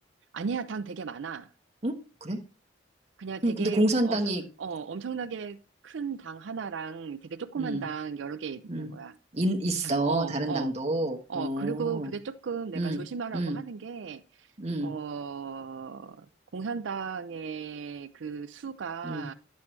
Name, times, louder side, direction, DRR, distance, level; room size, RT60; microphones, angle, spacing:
voice 1, 0.3-1.5 3.2-4.2 4.6-5.6 5.8-9.2 9.8-10.7 11.3-14.5 14.8-16.3 16.5-19.3, right 6 dB, 85° right, 11 dB, 0.5 m, -36 dB
voice 2, 1.8-2.4 3.4-4.4 7.6-7.8 8.7-8.9 9.3-12.1 12.7-13.0 13.3-13.6 14.6-14.9 19.0-19.2, right 1 dB, 35° right, 1 dB, 1.2 m, -28 dB
10.5 x 7.5 x 3.2 m, 0.34 s
head